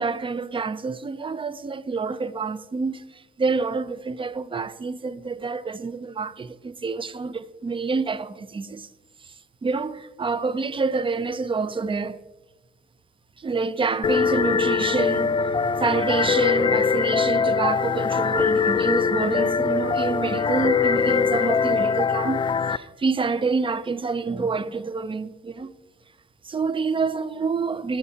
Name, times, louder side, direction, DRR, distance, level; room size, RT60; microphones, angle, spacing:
voice 1, 0.0-8.9 9.6-12.2 13.4-25.7 26.4-28.0, right 4 dB, 25° right, 0.5 m, -27 dB
sound 1, 14.0-22.8, left 6 dB, 25° left, 0.3 m, -22 dB
17.0 x 8.0 x 2.8 m
cardioid pair, 90°, 20 cm